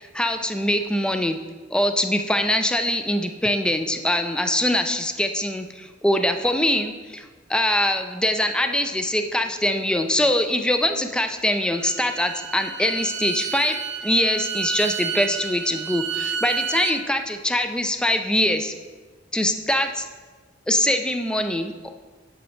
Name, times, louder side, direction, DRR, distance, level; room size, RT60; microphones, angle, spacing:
voice 1, 0.1-1.4 1.7-7.2 7.5-13.8 14.0-18.7 19.3-20.1 20.7-21.7, left 1 dB, 5° left, 7 dB, 0.4 m, -23 dB
Bowed string instrument, 11.6-17.0, right 6 dB, 70° right, 0.6 m, -30 dB
9.2 x 6.0 x 3.1 m, 1.4 s
head